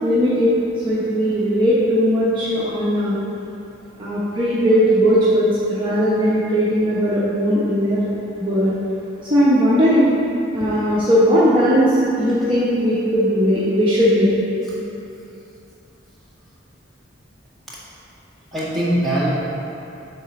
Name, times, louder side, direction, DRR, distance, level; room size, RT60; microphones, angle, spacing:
voice 1, 0.0-0.5 0.8-3.2 4.0-8.1 8.4-8.7 9.3-10.1 10.5-14.3, equal, 25° right, -10 dB, 0.9 m, -18 dB
voice 2, 18.5-19.3, right 1 dB, ahead, -11 dB, 1.8 m, -22 dB
7.3 x 4.1 x 6.4 m, 2.7 s
head